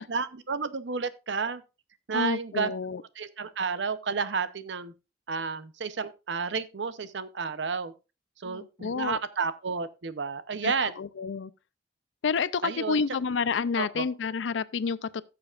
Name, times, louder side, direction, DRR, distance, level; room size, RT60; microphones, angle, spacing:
voice 1, 0.0-1.6 2.1-2.7 3.2-4.9 5.3-7.9 8.4-10.9 12.6-13.0 13.8-14.0, right 5 dB, 80° right, 0.7 m, -31 dB
voice 2, 2.1-3.0 8.4-9.2 10.6-11.5 12.2-15.2, left 5 dB, 85° left, 0.5 m, -29 dB
16.0 x 6.9 x 2.4 m
head